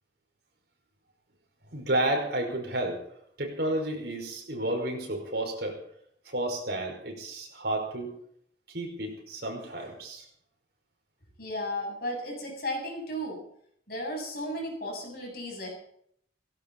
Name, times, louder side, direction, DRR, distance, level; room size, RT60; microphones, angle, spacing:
voice 1, 1.7-3.0 3.4-5.8 6.3-8.1 8.7-10.2, right 1 dB, 60° right, 2 dB, 5.5 m, -31 dB
voice 2, 11.4-13.4 13.9-15.7, left 1 dB, 55° left, 0 dB, 7.9 m, -34 dB
18.0 x 16.5 x 4.2 m, 0.67 s
head